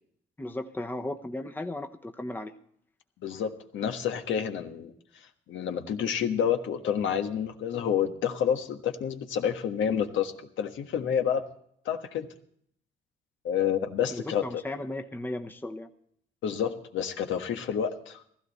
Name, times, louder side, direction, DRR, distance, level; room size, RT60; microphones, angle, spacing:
voice 1, 0.4-2.5 14.1-15.9, left 1 dB, 10° left, 6 dB, 1.0 m, -36 dB
voice 2, 3.2-4.9 5.5-10.3 10.6-11.4 11.8-12.3 13.4-14.4 16.4-18.2, left 8 dB, 75° left, 5 dB, 1.4 m, -29 dB
16.0 x 14.5 x 4.2 m, 0.66 s
cardioid pair, 90°, 20 cm